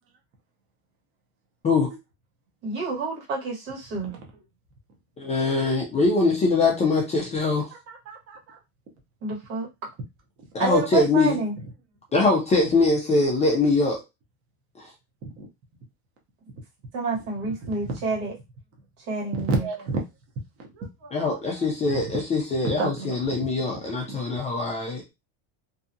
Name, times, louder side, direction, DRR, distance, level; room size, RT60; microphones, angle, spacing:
voice 1, 2.6-4.1 9.2-9.7 10.6-11.5 16.9-18.3 19.1-19.6, right 4 dB, 75° right, 1.5 m, -29 dB
voice 2, 5.2-7.7 10.5-11.4 12.1-14.0 14.8-14.9 21.1-25.0, left 3 dB, 20° left, 0.3 m, -23 dB
voice 3, 7.9-8.6 15.2-15.5 17.6-18.0 19.4-20.0 20.7-21.4 22.7-23.2, right 3 dB, 35° right, 0.7 m, -31 dB
2.7 x 2.3 x 2.6 m
cardioid pair, 145°, 42 cm